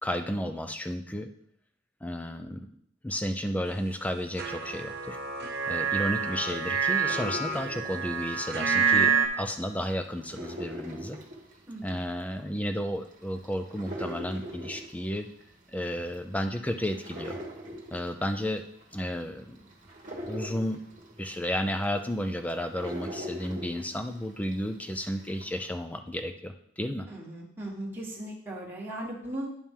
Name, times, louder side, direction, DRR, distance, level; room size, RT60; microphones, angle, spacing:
voice 1, 0.0-1.3 2.0-2.7 3.0-5.2 5.7-11.2 11.8-15.3 15.7-17.4 17.9-18.6 18.9-19.7 20.3-20.8 21.2-27.1, equal, 5° left, 6 dB, 0.5 m, -32 dB
sound 1, 4.4-9.3, right 6 dB, 55° right, 0.7 m, -27 dB
sound 2, 6.9-9.2 9.5-24.7 25.1-25.6, equal, 40° right, 1.3 m, -42 dB
voice 2, 11.7-12.0 27.1-29.5, right 1 dB, 10° right, -5 dB, 1.5 m, -38 dB
10.0 x 4.5 x 3.7 m, 0.67 s
head